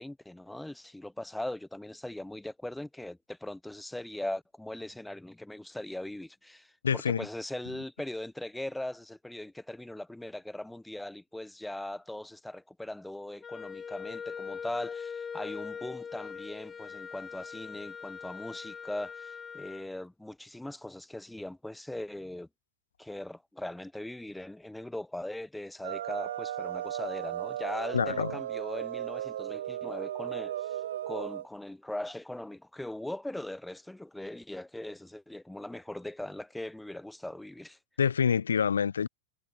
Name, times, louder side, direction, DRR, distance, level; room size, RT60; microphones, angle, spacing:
voice 1, 0.0-22.5 23.0-30.8 31.1-37.8, left 1 dB, 5° left, 0.9 m, -40 dB
voice 2, 6.8-7.3 27.9-28.4 38.0-39.1, left 7 dB, 70° left, 0.5 m, -26 dB
Wind instrument woodwind instrument, 13.4-19.9, left 6 dB, 20° left, 0.5 m, -41 dB
sound 1, 25.8-31.5, right 12 dB, 60° right, 1.6 m, -36 dB
figure-of-eight pair, 90°, 0 cm